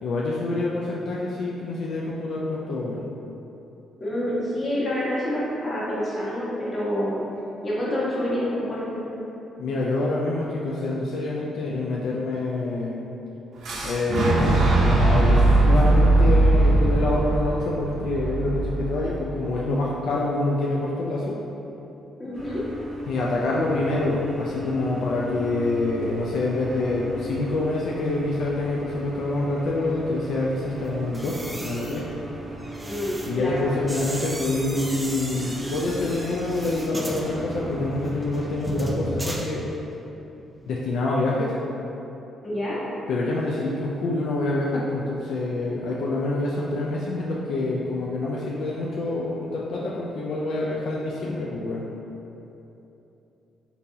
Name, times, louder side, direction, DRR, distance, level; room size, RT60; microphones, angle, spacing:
voice 1, 0.0-3.0 9.6-13.0 13.8-14.6 14.8-21.4 23.1-32.1 33.3-39.7 40.7-41.5 43.1-51.8, left 2 dB, 75° left, -4 dB, 0.3 m, -26 dB
voice 2, 4.0-7.2 7.6-9.2 22.2-22.6 32.9-33.7 42.4-42.8, left 1 dB, 35° left, -8 dB, 1.1 m, -27 dB
Boom, 13.6-19.5, right 2 dB, 65° right, 0.6 m, -20 dB
sound 1, 22.3-38.6, right 1 dB, 35° right, 0.8 m, -37 dB
sound 2, 31.0-40.1 40.4-40.7, right 1 dB, 15° right, 0.3 m, -36 dB
3.7 x 2.8 x 2.7 m, 3.0 s
cardioid pair, 95°, 0 cm